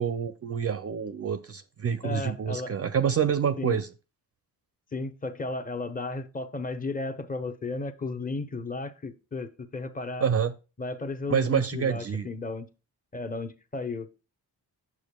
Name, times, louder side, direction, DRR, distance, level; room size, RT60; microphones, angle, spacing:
voice 1, 0.0-3.9 10.2-10.5 11.3-12.3, right 7 dB, 40° right, 0.4 m, -27 dB
voice 2, 2.0-2.7 3.6-3.8 4.9-10.3 10.8-12.7 13.1-14.1, left 3 dB, 20° left, 0.7 m, -34 dB
8.4 x 6.6 x 2.2 m
cardioid pair, 100°, 39 cm